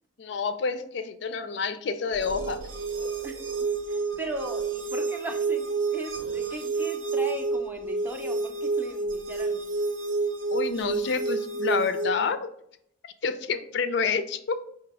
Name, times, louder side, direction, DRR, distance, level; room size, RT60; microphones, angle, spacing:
voice 1, 0.2-2.6 3.0-3.1 10.5-12.5 13.2-14.6, left 5 dB, 60° left, 10 dB, 0.4 m, -28 dB
Tono Rugoso Corto, 2.2-12.2, right 3 dB, 70° right, 0.6 m, -29 dB
voice 2, 3.2-9.7, right 1 dB, 10° right, 3 dB, 0.4 m, -38 dB
4.8 x 2.7 x 3.5 m, 0.71 s
head